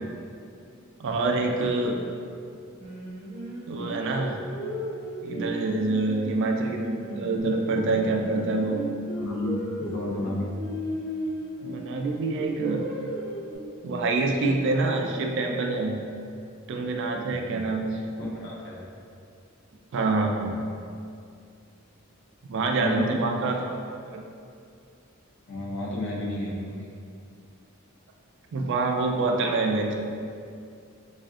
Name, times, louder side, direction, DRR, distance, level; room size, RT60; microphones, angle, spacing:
voice 1, 1.0-2.0 3.7-4.4 5.2-8.8 11.6-12.9 13.8-16.0 16.7-18.1 19.9-20.3 22.4-23.8 24.1-24.2 28.5-30.0, right 3 dB, 60° right, 3 dB, 0.3 m, -26 dB
Singing, 2.8-7.5 7.9-11.9 12.4-13.6, equal, 35° right, 0.7 m, -36 dB
voice 2, 9.2-10.5 17.2-17.6 18.2-18.8 20.3-20.6 22.7-23.3 25.5-26.9, left 1 dB, 60° left, -4 dB, 0.6 m, -32 dB
3.4 x 2.4 x 2.3 m, 2.4 s
head